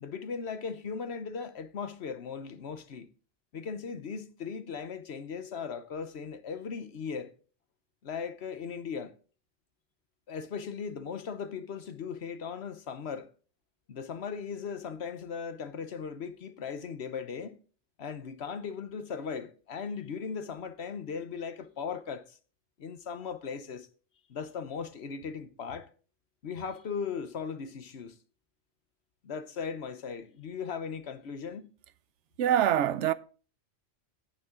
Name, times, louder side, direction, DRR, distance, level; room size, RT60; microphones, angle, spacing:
voice 1, 0.0-3.1 3.5-7.3 8.0-9.1 10.3-13.3 13.9-17.6 18.0-22.4 22.8-23.9 24.3-25.9 26.4-28.2 29.2-31.7, left 6 dB, 65° left, 1.2 m, -38 dB
voice 2, 32.4-33.1, right 10 dB, 80° right, 0.9 m, -24 dB
9.4 x 9.0 x 3.7 m
omnidirectional pair, 1.2 m